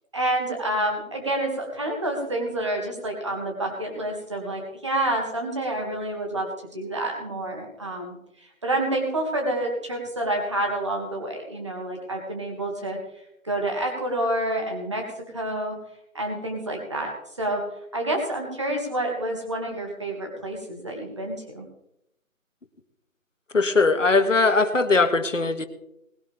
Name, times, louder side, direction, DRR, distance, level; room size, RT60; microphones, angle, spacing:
voice 1, 0.1-8.1 8.4-13.0 13.4-15.8 16.1-21.7, right 1 dB, 20° right, 1 dB, 2.1 m, -28 dB
voice 2, 23.5-25.7, left 3 dB, 60° left, 8 dB, 1.8 m, -20 dB
20.0 x 12.0 x 3.5 m, 0.81 s
figure-of-eight pair, 175°, 42 cm